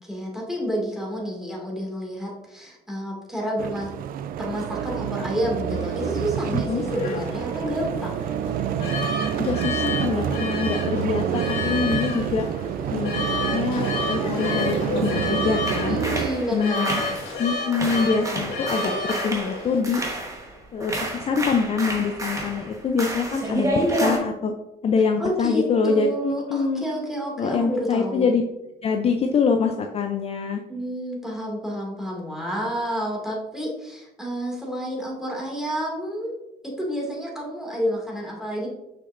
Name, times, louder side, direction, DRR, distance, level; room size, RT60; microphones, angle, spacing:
voice 1, 0.0-3.9 4.4-8.3 15.9-17.0 23.5-23.8 25.2-28.2 30.7-36.3 36.6-38.7, equal, 5° right, -3 dB, 2.2 m, -29 dB
sound 1, 3.6-16.3, right 9 dB, 60° right, 0.4 m, -28 dB
sound 2, 5.7-19.8, left 3 dB, 70° left, 1.8 m, -31 dB
voice 2, 9.4-12.4 12.9-13.2 13.5-16.0 16.5-17.0 17.4-20.0 20.7-23.7 23.9-24.5 24.8-26.8 27.4-28.4 28.8-30.6, left 5 dB, 35° left, 4 dB, 0.5 m, -25 dB
sound 3, 15.7-17.5 17.7-20.5 20.8-24.2, right 1 dB, 20° right, 1.2 m, -29 dB
6.2 x 6.1 x 2.5 m, 0.90 s
cardioid pair, 110°, 17 cm